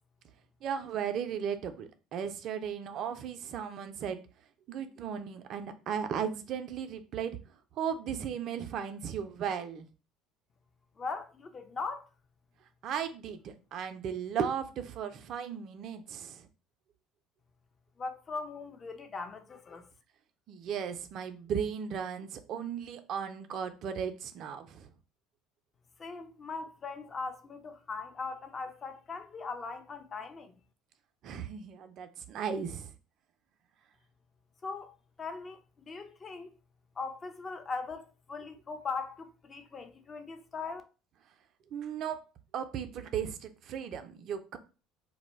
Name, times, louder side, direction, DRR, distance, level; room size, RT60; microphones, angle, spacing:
voice 1, 0.6-4.2 4.7-7.4 7.7-9.9 12.8-16.5 20.5-24.9 31.2-32.9 41.7-42.2 42.5-44.6, right 7 dB, 55° right, 0.3 m, -36 dB
voice 2, 11.0-12.1 18.0-19.9 26.0-30.5 34.6-36.6 37.0-40.8, left 4 dB, 35° left, 0.4 m, -40 dB
2.1 x 2.0 x 3.1 m
hypercardioid pair, 65°, 0 cm